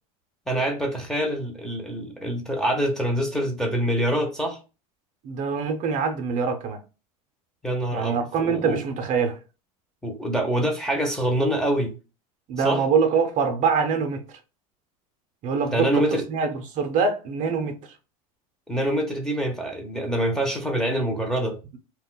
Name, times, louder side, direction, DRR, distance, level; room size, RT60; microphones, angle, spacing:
voice 1, 0.5-4.6 7.6-8.8 10.0-11.9 12.6-12.8 15.6-16.2 18.7-21.6, right 1 dB, 5° left, 0.6 m, -25 dB
voice 2, 5.2-6.8 7.9-9.4 12.5-14.2 15.4-16.0 16.3-17.8, right 5 dB, 45° right, 0.6 m, -24 dB
2.2 x 2.1 x 3.7 m
supercardioid pair, 125°, 19 cm